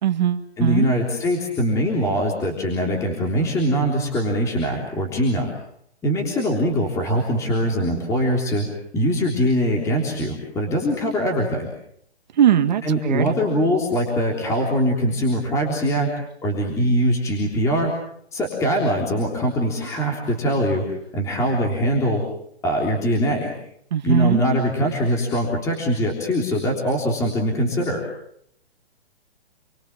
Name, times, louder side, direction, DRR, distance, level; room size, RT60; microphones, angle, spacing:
voice 1, 0.0-0.9 12.4-13.3 23.9-24.4, right 10 dB, 40° right, 8 dB, 1.9 m, -20 dB
voice 2, 0.6-5.5 6.0-8.7 8.9-11.7 12.8-16.1 16.4-17.9 18.3-20.8 21.1-22.2 22.6-23.5 24.0-28.0, equal, 10° left, 0 dB, 3.5 m, -22 dB
28.5 x 23.5 x 7.4 m, 0.71 s
hypercardioid pair, 165°, 34 cm